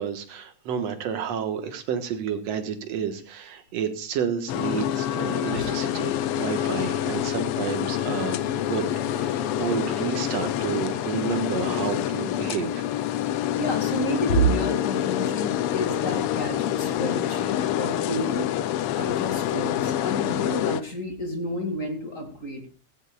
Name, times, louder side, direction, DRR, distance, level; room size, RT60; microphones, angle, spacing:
voice 1, 0.0-8.9 9.1-12.9, right 7 dB, 65° right, 7 dB, 2.5 m, -30 dB
sound 1, 4.5-20.8, left 11 dB, 75° left, 1.3 m, -27 dB
voice 2, 13.6-18.5 18.9-22.6, right 1 dB, 25° left, 4 dB, 2.6 m, -29 dB
16.0 x 15.5 x 2.4 m, 0.39 s
omnidirectional pair, 3.4 m